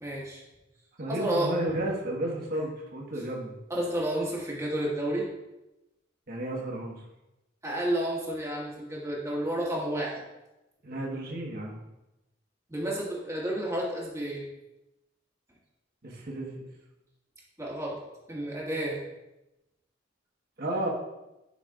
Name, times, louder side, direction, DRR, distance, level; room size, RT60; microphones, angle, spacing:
voice 1, 0.0-0.4 1.1-1.5 3.7-5.3 7.6-10.2 12.7-14.4 17.6-18.0 18.3-19.0, right 1 dB, 15° right, -4 dB, 1.7 m, -31 dB
voice 2, 1.0-3.6 6.3-7.0 10.8-11.8 16.0-16.6 20.6-20.9, right 1 dB, 55° right, -1 dB, 1.4 m, -32 dB
10.5 x 5.5 x 2.4 m, 0.96 s
head